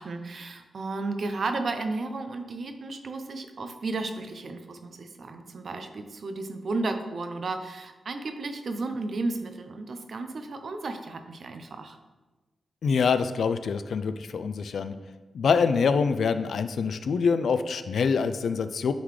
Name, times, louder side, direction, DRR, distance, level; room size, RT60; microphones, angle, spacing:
voice 1, 0.0-12.0, right 3 dB, 60° right, 7 dB, 0.6 m, -33 dB
voice 2, 12.8-14.9 15.3-18.9, left 5 dB, 75° left, 11 dB, 0.3 m, -25 dB
9.3 x 3.8 x 3.2 m, 1.2 s
cardioid pair, 85°, 0 cm